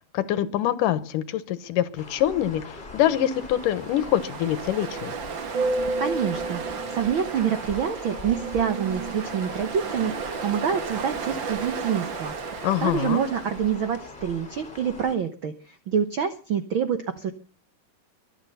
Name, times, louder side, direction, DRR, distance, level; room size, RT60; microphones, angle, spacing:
voice 1, 0.1-5.1 12.6-13.2, left 11 dB, 80° left, 15 dB, 2.6 m, -25 dB
sound 1, 2.0-15.1, left 3 dB, 15° left, 2.1 m, -42 dB
Ocean, 3.0-14.0, right 4 dB, 50° right, 1.5 m, -33 dB
voice 2, 6.0-6.6 6.9-17.3, right 8 dB, 70° right, 9 dB, 1.2 m, -27 dB
23.5 x 9.0 x 5.7 m, 0.38 s
omnidirectional pair, 3.9 m